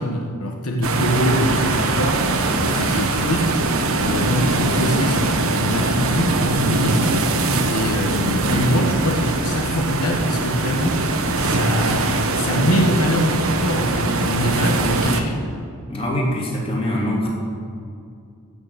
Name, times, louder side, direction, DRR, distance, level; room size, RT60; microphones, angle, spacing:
voice 1, 0.0-2.3 2.6-3.6 4.0-7.1 7.7-11.0 11.4-15.4, equal, 75° left, 2 dB, 1.1 m, -23 dB
sound 1, 0.8-15.2, right 2 dB, 65° right, 1.1 m, -21 dB
voice 2, 15.9-17.3, left 1 dB, 25° left, -3 dB, 2.8 m, -23 dB
16.0 x 6.5 x 6.9 m, 2.3 s
head